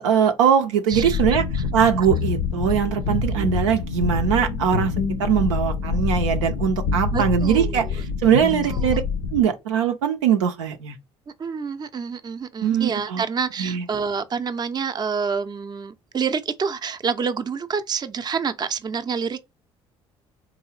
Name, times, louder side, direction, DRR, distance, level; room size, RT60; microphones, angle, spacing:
voice 1, 0.0-1.4 1.7-4.9 5.2-7.9 8.2-9.0 9.3-10.9 12.6-13.2 13.6-13.8, right 8 dB, 80° right, 0.5 m, -21 dB
sound 1, 0.9-9.4, left 5 dB, 75° left, 0.7 m, -26 dB
voice 2, 0.9-1.2 1.5-1.6 7.1-8.0 8.6-9.0 11.4-19.4, right 6 dB, 25° right, 0.5 m, -28 dB
3.7 x 2.6 x 3.1 m
hypercardioid pair, 60°, 15 cm